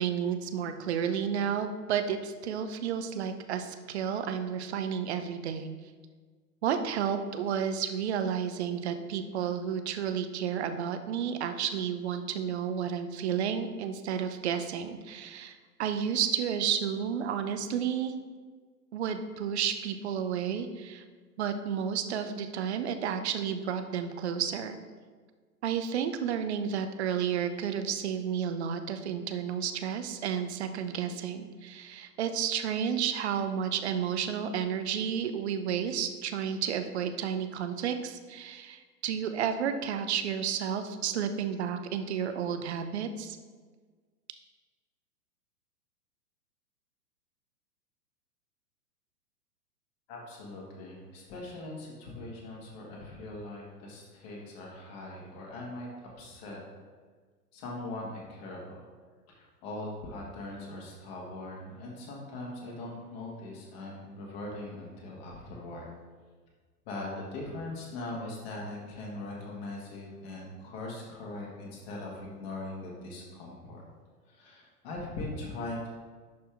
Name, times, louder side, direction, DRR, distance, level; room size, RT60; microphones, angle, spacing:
voice 1, 0.0-5.7 6.6-18.1 18.9-21.0 21.4-24.8 25.6-43.4, right 8 dB, 45° right, 8 dB, 0.7 m, -31 dB
voice 2, 50.1-56.6 57.5-58.8 59.3-65.9 66.9-73.8 74.3-75.9, left 2 dB, 40° left, -2 dB, 1.8 m, -41 dB
11.0 x 4.4 x 3.5 m, 1.5 s
figure-of-eight pair, 110°, 48 cm